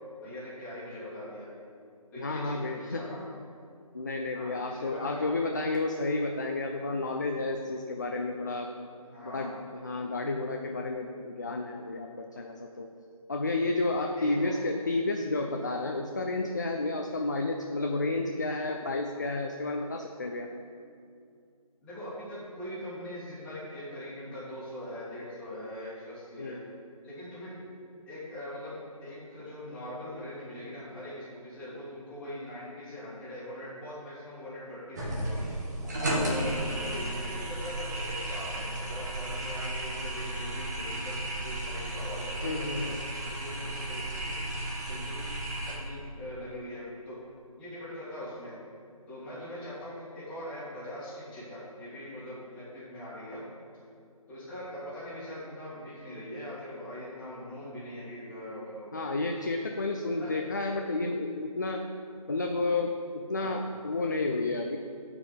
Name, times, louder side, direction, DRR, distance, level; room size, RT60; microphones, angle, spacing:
voice 1, 0.2-1.5 2.1-3.3 4.3-5.5 9.1-9.5 14.2-14.5 21.8-26.6 27.0-27.5 28.1-35.4 36.1-43.0 43.3-45.3 45.8-47.2 47.6-48.5 49.1-53.4 54.3-59.1 59.5-59.6 60.1-60.3 63.3-63.6, left 1 dB, 5° left, -11 dB, 2.0 m, -42 dB
voice 2, 2.2-3.1 3.9-8.7 9.2-12.9 13.3-20.5 26.4-26.6 36.0-36.6 42.4-43.0 58.9-61.8 62.3-64.8, left 2 dB, 30° left, 3 dB, 0.4 m, -31 dB
sound 1, 35.0-45.8, right 1 dB, 30° right, 1.5 m, -34 dB
9.1 x 4.8 x 6.7 m, 2.4 s
figure-of-eight pair, 155°, 19 cm